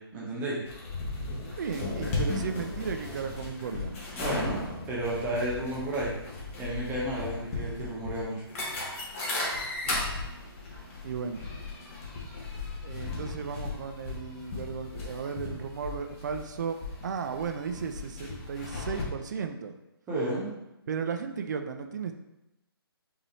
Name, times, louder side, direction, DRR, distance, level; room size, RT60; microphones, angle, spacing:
voice 1, 0.1-0.6 4.1-4.6 4.9-6.1 6.6-8.4 20.1-20.5, right 1 dB, 15° right, -5 dB, 1.1 m, -32 dB
sound 1, 0.7-19.0, left 3 dB, 30° left, 1.2 m, -36 dB
voice 2, 1.6-3.9 9.8-10.1 11.0-11.5 12.8-19.8 20.9-22.1, right 6 dB, 45° right, 6 dB, 0.5 m, -35 dB
5.4 x 2.9 x 3.1 m, 0.92 s
figure-of-eight pair, 145°, 13 cm